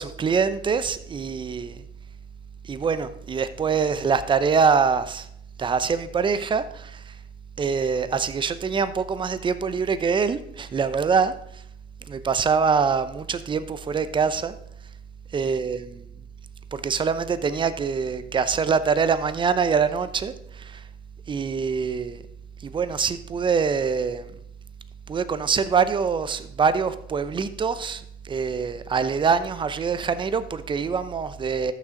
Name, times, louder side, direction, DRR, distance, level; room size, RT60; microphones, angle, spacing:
voice 1, 0.0-1.8 2.6-5.3 5.6-7.1 7.6-11.3 12.1-14.5 15.3-15.8 16.7-20.8 21.3-22.2 22.6-24.3 25.1-31.7, right 5 dB, 25° right, 0.7 m, -24 dB
13.5 x 6.3 x 3.8 m
cardioid pair, 115°, 19 cm